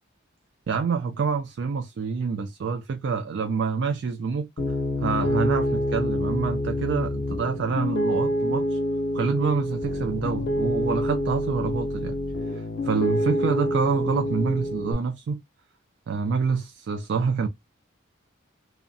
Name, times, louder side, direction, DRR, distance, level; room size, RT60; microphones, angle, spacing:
voice 1, 0.7-4.5 5.0-8.8 9.1-12.2 12.5-15.4 16.1-17.5, right 5 dB, 60° right, 0.3 m, -27 dB
Piano, 4.6-14.9, left 1 dB, 55° left, 0.5 m, -27 dB
2.5 x 2.1 x 2.5 m
head